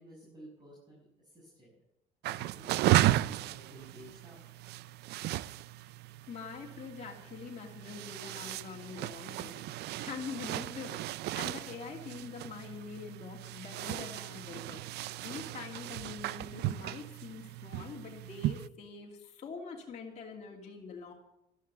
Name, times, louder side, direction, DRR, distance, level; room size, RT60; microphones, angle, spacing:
voice 1, 0.0-1.8 2.2-4.4, right 1 dB, 25° right, -5 dB, 6.3 m, -53 dB
sound 1, 2.2-18.7, right 15 dB, 75° right, 0.5 m, -35 dB
voice 2, 6.3-14.8 15.2-21.1, left 5 dB, 40° left, -2 dB, 2.9 m, -44 dB
13.5 x 12.0 x 7.0 m, 0.83 s
cardioid pair, 110°, 17 cm